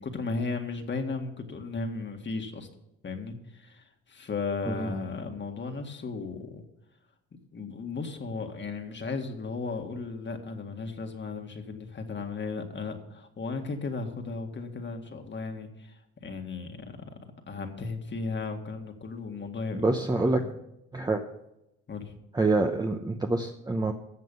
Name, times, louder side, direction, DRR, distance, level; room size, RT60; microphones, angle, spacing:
voice 1, 0.0-2.7 3.0-6.6 7.5-17.2 17.5-20.5 21.9-22.1, left 4 dB, 40° left, 5 dB, 1.9 m, -35 dB
voice 2, 19.7-20.4 20.9-21.2 22.3-23.9, right 2 dB, 15° right, 3 dB, 0.9 m, -26 dB
14.0 x 7.6 x 5.5 m, 0.85 s
cardioid pair, 90°, 30 cm